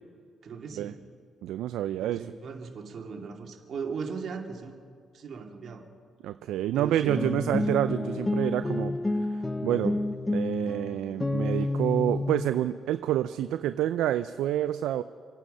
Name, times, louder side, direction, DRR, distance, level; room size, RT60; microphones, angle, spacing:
voice 1, 0.4-1.0 2.0-4.7 5.1-5.8 6.7-7.2 7.5-7.6, right 5 dB, 60° right, 1 dB, 2.3 m, -38 dB
voice 2, 1.4-2.2 6.2-8.9 9.3-10.0 10.3-15.0, right 12 dB, 85° right, 11 dB, 0.4 m, -28 dB
sound 1, 7.1-12.5, left 2 dB, 15° left, 0.7 m, -29 dB
27.0 x 9.0 x 5.5 m, 2.2 s
cardioid pair, 90°, 0 cm